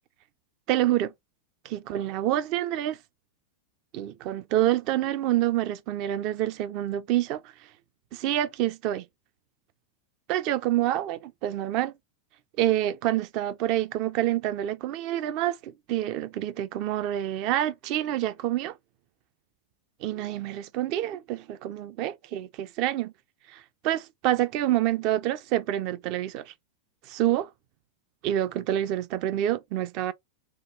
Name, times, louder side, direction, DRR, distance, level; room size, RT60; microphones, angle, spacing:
voice 1, 0.7-1.1 1.6-3.0 3.9-7.5 8.1-9.0 10.3-11.9 12.6-18.8 20.0-23.1 23.5-26.5 27.1-27.5 28.2-30.1, right 13 dB, 40° right, 0.5 m, -27 dB
6.2 x 2.4 x 3.4 m
figure-of-eight pair, 90°, 0 cm